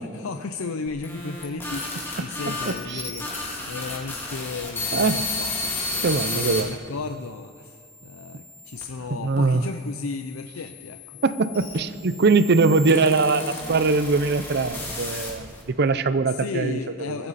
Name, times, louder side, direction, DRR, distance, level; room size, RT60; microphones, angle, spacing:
voice 1, 0.0-11.2 16.3-17.3, left 4 dB, 85° left, 7 dB, 0.6 m, -35 dB
sound 1, 0.9-6.6 7.3-8.8 9.6-15.6, left 2 dB, 10° left, 2.4 m, -33 dB
voice 2, 2.5-3.1 4.9-5.2 6.0-6.7 9.1-9.7 11.2-15.5 15.8-16.8, right 3 dB, 55° right, 13 dB, 0.6 m, -22 dB
23.0 x 15.0 x 4.2 m, 2.2 s
head